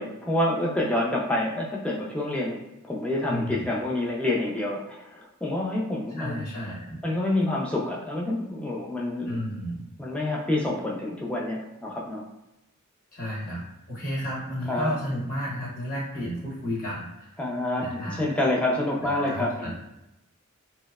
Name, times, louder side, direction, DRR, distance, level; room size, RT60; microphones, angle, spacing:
voice 1, 0.0-2.6 2.8-6.4 7.0-9.4 10.0-12.2 14.7-15.0 17.4-19.7, left 1 dB, 5° left, -4 dB, 0.4 m, -27 dB
voice 2, 3.3-3.6 6.1-7.0 9.3-9.9 13.1-13.6 13.9-17.3 17.8-18.3 19.0-19.7, equal, 40° left, -6 dB, 0.9 m, -32 dB
2.6 x 2.0 x 2.3 m, 0.92 s
head